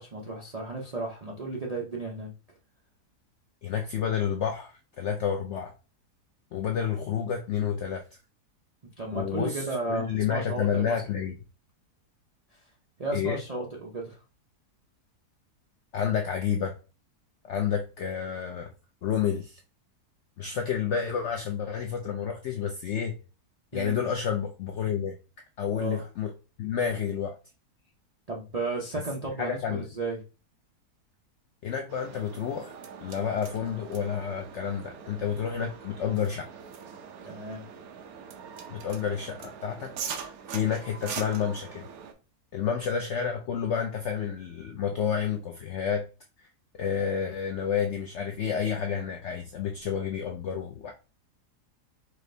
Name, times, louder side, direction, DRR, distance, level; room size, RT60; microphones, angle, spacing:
voice 1, 0.0-2.3 9.0-11.0 13.0-14.2 23.7-24.0 25.8-26.0 28.3-30.2 37.2-37.6, right 3 dB, 55° right, 0.4 m, -34 dB
voice 2, 3.6-5.7 6.5-8.0 9.1-11.4 13.1-13.4 15.9-16.7 17.5-18.7 19.0-19.6 20.4-23.1 23.7-25.1 25.6-26.3 26.6-27.3 29.4-29.9 31.6-32.7 33.0-36.5 38.7-39.9 40.5-41.8 42.5-46.0 46.8-50.9, left 7 dB, 75° left, 0.6 m, -30 dB
sound 1, 31.9-42.1, right 7 dB, 70° right, 1.1 m, -42 dB
4.5 x 2.5 x 3.2 m
omnidirectional pair, 1.7 m